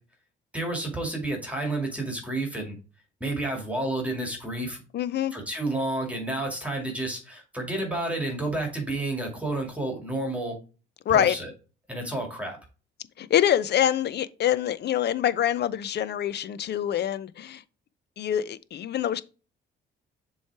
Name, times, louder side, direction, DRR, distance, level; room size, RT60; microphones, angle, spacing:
voice 1, 0.5-2.8 3.2-4.8 5.3-10.6 11.1-11.5 11.9-12.6, right 2 dB, 5° right, 2.2 m, -30 dB
voice 2, 4.9-5.3 11.1-11.4 13.2-17.6 18.2-19.2, left 10 dB, 55° left, 0.6 m, -25 dB
7.1 x 3.2 x 4.6 m
cardioid pair, 90°, 20 cm